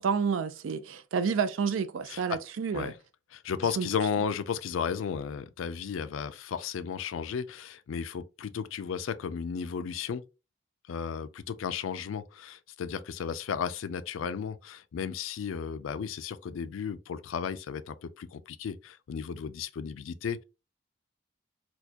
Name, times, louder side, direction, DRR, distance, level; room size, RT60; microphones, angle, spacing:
voice 1, 0.0-2.9 3.8-3.9, right 6 dB, 85° right, 0.4 m, -29 dB
voice 2, 2.1-2.4 2.7-2.9 3.3-10.2 10.9-20.4, left 7 dB, 90° left, 0.4 m, -34 dB
4.2 x 2.2 x 2.8 m
head